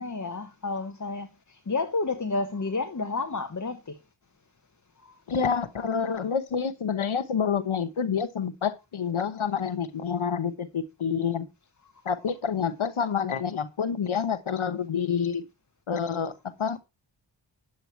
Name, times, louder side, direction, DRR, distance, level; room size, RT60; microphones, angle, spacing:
voice 1, 0.0-3.9 5.0-5.2, left 3 dB, 40° left, 1.2 m, -31 dB
voice 2, 5.3-11.5 12.0-15.4 15.9-16.8, left 6 dB, 85° left, 1.2 m, -28 dB
10.0 x 8.2 x 4.5 m
wide cardioid pair, 60°, 47 cm